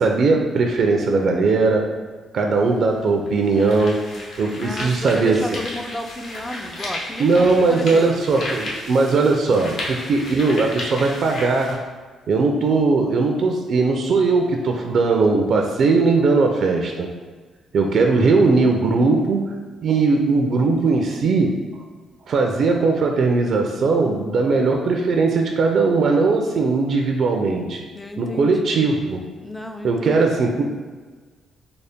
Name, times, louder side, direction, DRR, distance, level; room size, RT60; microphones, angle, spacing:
voice 1, 0.0-1.9 2.3-4.0 4.4-5.4 7.2-11.8 12.3-17.1 17.7-19.4 19.8-21.5 22.3-27.8 28.2-29.2 29.8-30.6, right 3 dB, 60° right, 2 dB, 0.4 m, -19 dB
sound 1, 2.6-2.7 3.3-11.7, left 1 dB, 65° left, 0.9 m, -33 dB
voice 2, 4.5-8.1 9.5-9.8 17.8-18.4 27.9-28.8 29.4-30.4, left 1 dB, 10° left, 5 dB, 0.4 m, -33 dB
3.9 x 2.1 x 3.5 m, 1.4 s
cardioid pair, 90°, 0 cm